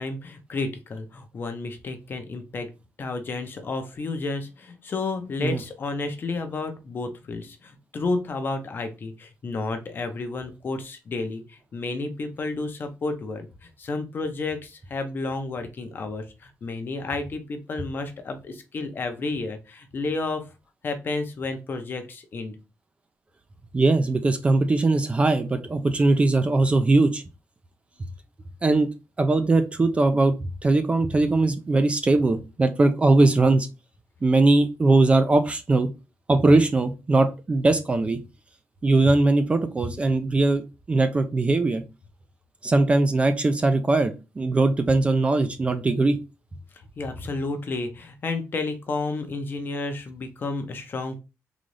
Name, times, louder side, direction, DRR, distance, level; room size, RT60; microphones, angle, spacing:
voice 1, 0.0-2.7 3.0-20.5 20.8-22.6 46.7-51.2, left 3 dB, 40° left, 7 dB, 0.6 m, -31 dB
voice 2, 23.7-27.2 28.6-28.9 29.2-30.3 30.6-33.7 34.2-35.9 36.3-38.2 38.8-41.8 42.6-46.2, right 2 dB, 20° right, 8 dB, 0.4 m, -20 dB
3.9 x 2.3 x 3.1 m, 0.28 s
wide cardioid pair, 160°, 6 cm